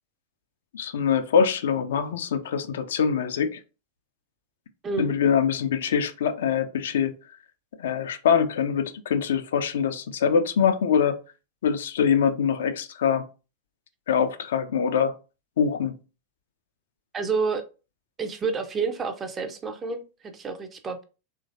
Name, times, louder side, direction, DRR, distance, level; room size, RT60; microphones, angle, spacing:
voice 1, 0.7-3.6 5.0-7.1 7.8-11.2 11.6-13.2 14.1-15.1 15.6-15.9, left 7 dB, 60° left, 0.3 m, -24 dB
voice 2, 17.1-17.6 18.2-21.0, right 5 dB, 20° right, 0.5 m, -29 dB
3.0 x 2.5 x 2.5 m
figure-of-eight pair, 90°, 0 cm